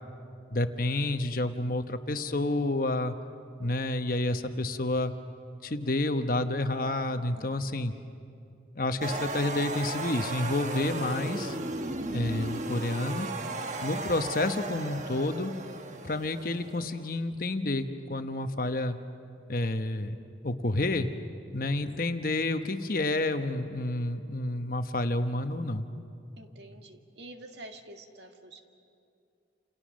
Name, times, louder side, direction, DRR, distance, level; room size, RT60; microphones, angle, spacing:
voice 1, 0.5-3.2 3.6-5.1 5.6-7.9 8.8-11.6 12.1-13.3 13.8-15.5 16.0-19.0 19.5-20.1 20.4-21.1 21.5-25.9, left 2 dB, 50° left, 8 dB, 1.1 m, -29 dB
voice 2, 7.3-7.8 26.4-28.6, right 1 dB, 70° right, 4 dB, 1.9 m, -48 dB
sound 1, 9.0-17.2, right 2 dB, 40° right, 1.2 m, -36 dB
29.0 x 28.5 x 6.4 m, 2.6 s
head